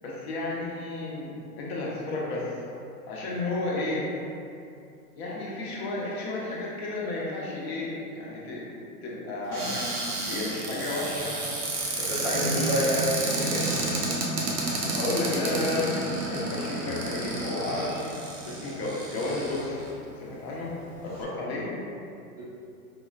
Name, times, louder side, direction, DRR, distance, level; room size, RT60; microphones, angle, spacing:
voice 1, 0.0-2.5 3.1-4.1 5.1-8.7 9.0-9.9 10.3-11.3 12.0-12.9 14.9-18.1 18.4-19.8 20.2-20.7 21.0-21.7, left 2 dB, 45° left, -5 dB, 0.7 m, -32 dB
Cupboard open or close, 9.5-19.9 20.5-20.6 20.9-21.2, right 2 dB, 85° right, 0.9 m, -31 dB
voice 2, 12.1-13.7 17.8-17.9 22.4-22.5, right 1 dB, 20° right, -10 dB, 0.4 m, -28 dB
5.0 x 2.1 x 2.4 m, 2.6 s
hypercardioid pair, 125°, 46 cm